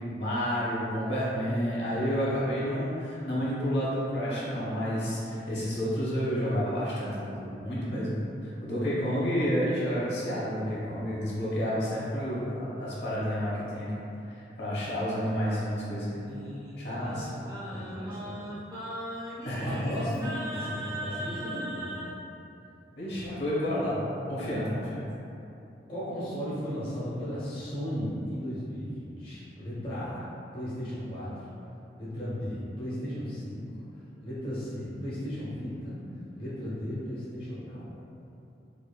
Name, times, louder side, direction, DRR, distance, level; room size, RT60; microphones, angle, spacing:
voice 1, 0.1-13.9 14.6-16.3 16.8-17.3 19.4-20.0 22.9-23.9 24.3-25.0, equal, 75° left, -8 dB, 1.1 m, -30 dB
Singing, 16.1-22.1, equal, 20° right, 0.4 m, -39 dB
voice 2, 16.9-18.6 19.5-21.9 23.1-23.4 24.4-24.6 25.9-30.2 30.5-31.3 32.0-33.6 34.2-36.0 36.4-38.0, equal, 30° left, -10 dB, 0.7 m, -36 dB
4.8 x 2.6 x 2.3 m, 2.8 s
head